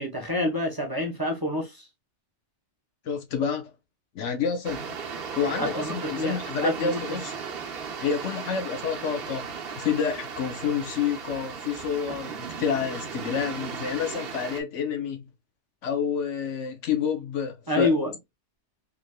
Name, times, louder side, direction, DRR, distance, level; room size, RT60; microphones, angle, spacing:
voice 1, 0.0-1.9 5.6-7.0 17.7-18.1, left 1 dB, 20° right, 0.8 m, -27 dB
voice 2, 3.0-3.7 4.1-4.8 5.3-7.3 8.0-15.2 15.8-17.9, left 7 dB, 80° left, 1.2 m, -29 dB
sound 1, 4.6-14.6, right 6 dB, 55° right, 1.0 m, -36 dB
3.7 x 3.4 x 2.3 m
omnidirectional pair, 1.2 m